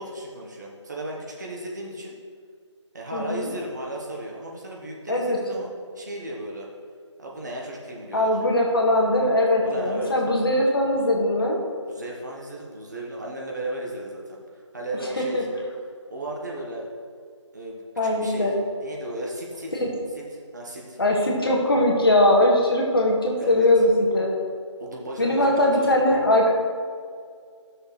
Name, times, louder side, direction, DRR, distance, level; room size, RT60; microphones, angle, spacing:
voice 1, 0.0-2.2 2.9-6.7 7.2-8.3 9.6-10.1 11.9-14.4 14.7-15.5 16.1-16.8 17.5-17.8 18.2-18.5 18.8-19.7 20.2-20.3 20.5-21.0 23.4-23.7 24.8-26.0, right 1 dB, 35° right, -2 dB, 1.2 m, -35 dB
voice 2, 3.1-3.5 5.1-5.4 8.1-11.6 15.2-15.4 18.0-18.5 19.8-19.9 21.0-24.3 25.2-26.5, left 1 dB, 50° left, -1 dB, 1.6 m, -21 dB
14.0 x 6.4 x 3.2 m, 2.1 s
figure-of-eight pair, 165°, 16 cm